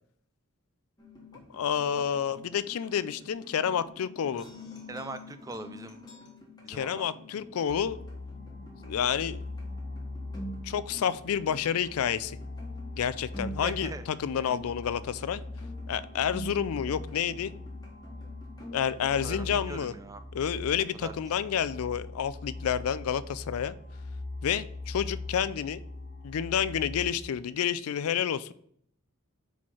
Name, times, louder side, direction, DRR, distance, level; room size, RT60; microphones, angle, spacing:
sound 1, 1.0-19.6, equal, 20° left, 1.3 m, -47 dB
voice 1, 1.5-4.5 6.7-8.0 8.8-9.4 10.6-12.4 13.0-15.4 15.9-17.5 18.7-19.9 20.3-23.7 24.4-25.8 26.2-28.5, left 8 dB, 75° left, 15 dB, 0.4 m, -29 dB
voice 2, 4.9-6.0 6.6-7.1 13.6-14.0 19.0-20.2 21.0-21.1, right 3 dB, 15° right, 10 dB, 0.3 m, -41 dB
sound 2, 7.7-27.1, left 2 dB, 45° left, 1.3 m, -41 dB
4.7 x 4.4 x 5.6 m, 0.64 s
head